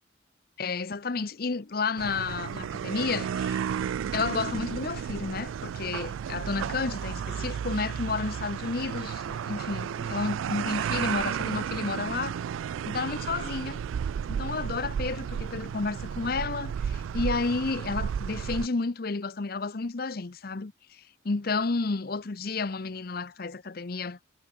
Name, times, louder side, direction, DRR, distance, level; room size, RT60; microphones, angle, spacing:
voice 1, 0.6-3.6 4.1-12.4 12.8-13.8 14.3-24.2, left 4 dB, 50° left, 0.7 m, -31 dB
sound 1, 2.0-18.7, right 8 dB, 85° right, 0.3 m, -33 dB
head